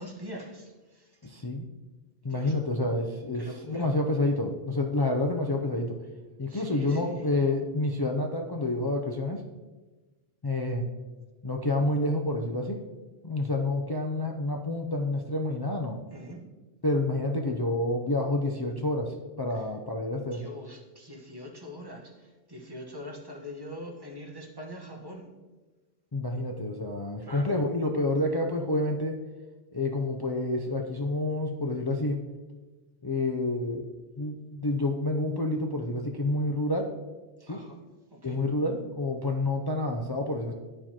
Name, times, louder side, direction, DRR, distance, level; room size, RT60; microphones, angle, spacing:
voice 1, 0.0-1.2 2.3-2.6 3.3-3.9 6.5-7.4 16.1-16.4 19.5-19.6 20.1-25.3 27.2-27.6 37.5-37.8 38.1-38.4, left 1 dB, 25° right, 0 dB, 1.1 m, -43 dB
voice 2, 1.2-1.7 2.2-6.0 6.4-9.4 10.4-10.9 11.4-12.8 13.2-16.0 16.8-20.4 26.1-29.2 29.7-32.2 33.0-33.9 34.2-36.9 37.5-37.6 38.2-40.5, left 2 dB, 35° left, 1 dB, 0.4 m, -28 dB
12.0 x 4.4 x 2.9 m, 1.2 s
omnidirectional pair, 1.1 m